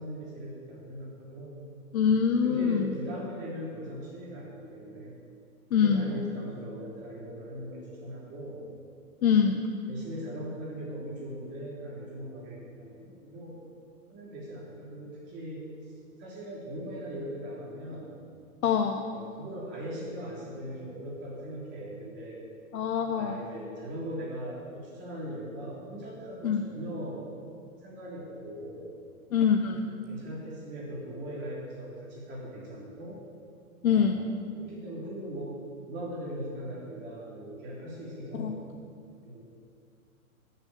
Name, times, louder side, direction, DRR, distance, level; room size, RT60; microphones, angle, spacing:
voice 1, 0.0-1.6 2.4-5.2 5.7-8.7 9.9-13.6 14.1-15.7 16.2-18.2 19.1-22.4 23.1-27.2 27.8-28.9 29.9-33.2 33.8-34.3 34.5-35.6 35.9-38.6 39.2-39.4, equal, 25° right, -4 dB, 3.4 m, -40 dB
voice 2, 1.9-3.0 5.7-6.1 9.2-9.7 18.6-19.1 22.7-23.4 26.4-26.6 29.3-29.9 33.8-34.2 38.4-38.5, left 7 dB, 75° left, 4 dB, 1.0 m, -24 dB
12.0 x 7.1 x 8.6 m, 2.3 s
hypercardioid pair, 150°, 43 cm